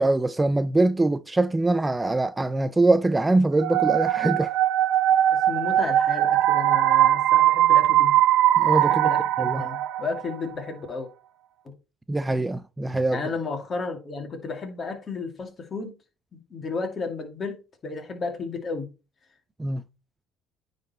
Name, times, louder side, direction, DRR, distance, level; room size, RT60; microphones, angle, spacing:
voice 1, 0.0-4.5 8.6-9.1 9.4-9.6 12.1-13.2 19.6-19.8, right 2 dB, 15° right, 0.4 m, -23 dB
sound 1, 3.6-10.4, right 12 dB, 70° right, 0.5 m, -20 dB
voice 2, 5.3-8.1 8.8-11.1 13.1-16.0 16.3-18.9, left 4 dB, 35° left, 2.4 m, -33 dB
9.6 x 4.1 x 4.3 m
cardioid pair, 110°, 0 cm